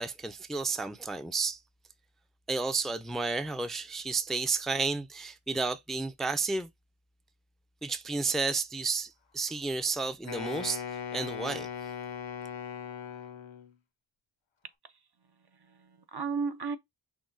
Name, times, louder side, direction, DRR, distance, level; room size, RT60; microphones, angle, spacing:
voice 1, 0.0-1.6 2.5-6.7 7.8-10.8 11.1-11.7, right 4 dB, ahead, 0.4 m, -31 dB
Wind instrument woodwind instrument, 10.2-13.7, left 8 dB, 75° left, 0.8 m, -39 dB
voice 2, 15.2-16.8, right 5 dB, 55° right, 0.7 m, -35 dB
6.1 x 2.2 x 3.8 m
wide cardioid pair, 50°, 46 cm